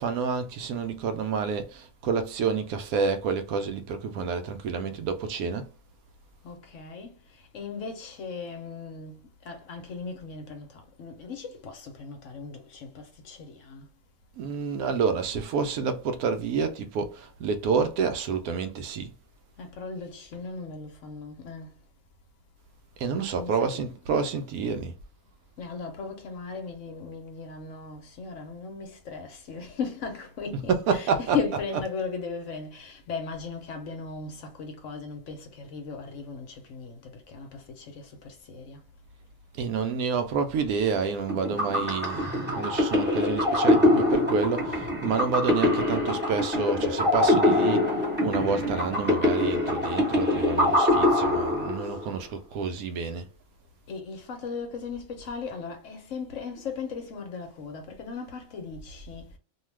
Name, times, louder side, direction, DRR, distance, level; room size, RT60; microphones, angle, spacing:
voice 1, 0.0-5.7 14.4-19.1 23.0-24.9 30.5-31.6 39.6-47.9 48.2-53.3, right 5 dB, 80° right, 1.0 m, -29 dB
voice 2, 6.4-13.9 19.6-21.8 23.3-23.9 25.6-38.8 51.8-51.9 53.9-59.3, left 5 dB, 60° left, 1.0 m, -37 dB
sound 1, 41.3-52.1, left 1 dB, 10° right, 0.9 m, -24 dB
2.7 x 2.3 x 3.1 m
omnidirectional pair, 1.5 m